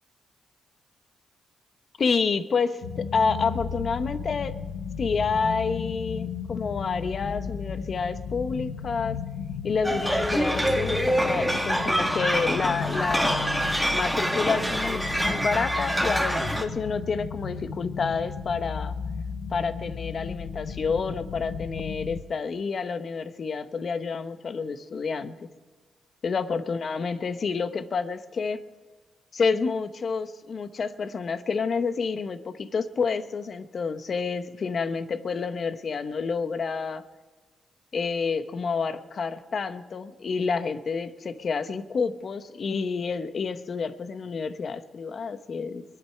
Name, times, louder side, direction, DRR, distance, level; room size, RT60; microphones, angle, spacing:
voice 1, 2.0-4.5 5.0-9.2 9.6-19.0 19.5-25.3 26.2-28.6 29.3-37.0 37.9-45.8, left 5 dB, 55° left, 11 dB, 1.0 m, -29 dB
sound 1, 2.8-22.2, left 6 dB, 80° left, 0.8 m, -35 dB
sound 2, 9.8-16.6, equal, ahead, 2.2 m, -26 dB
22.5 x 9.5 x 5.8 m, 1.3 s
cardioid pair, 65°, 0 cm